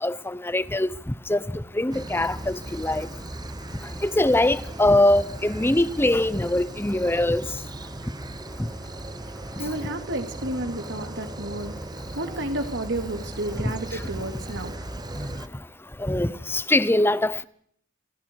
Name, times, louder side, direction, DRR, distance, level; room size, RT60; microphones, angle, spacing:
voice 1, 0.0-0.9 1.3-3.1 4.0-7.5 16.0-17.4, left 1 dB, 10° left, 0.9 m, -22 dB
sound 1, 1.9-15.5, right 1 dB, 20° right, 1.0 m, -37 dB
voice 2, 8.7-15.6, right 1 dB, 65° right, 2.8 m, -33 dB
27.0 x 26.5 x 4.7 m
head